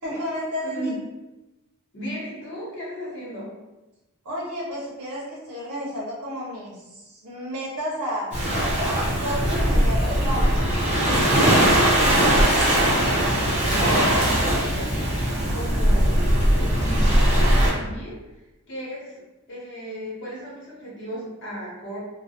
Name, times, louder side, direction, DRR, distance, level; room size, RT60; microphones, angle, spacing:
voice 1, 0.0-1.0 4.2-8.3 8.8-10.5, equal, 85° right, -5 dB, 0.7 m, -31 dB
voice 2, 0.6-0.9 1.9-3.5 11.6-16.2 16.6-18.2 18.7-19.2 19.5-22.0, equal, 60° left, -6 dB, 1.0 m, -36 dB
Waves surf, 8.3-17.7, equal, 30° right, 0.7 m, -20 dB
2.1 x 2.1 x 2.8 m, 1.0 s
head